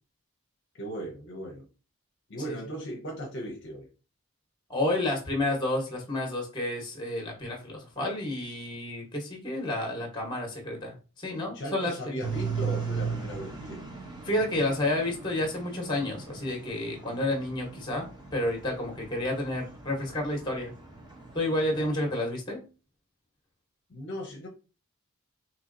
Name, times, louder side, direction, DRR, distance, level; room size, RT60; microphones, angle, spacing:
voice 1, 0.7-1.6 2.3-3.9 11.5-13.9 21.7-21.9 23.9-24.5, equal, 55° left, 1 dB, 0.7 m, -37 dB
voice 2, 4.7-12.2 14.2-20.7 21.3-22.6, left 1 dB, 20° left, 1 dB, 1.1 m, -30 dB
sound 1, 12.2-22.1, right 5 dB, 20° right, 0.8 m, -38 dB
4.2 x 2.9 x 2.6 m, 0.33 s
head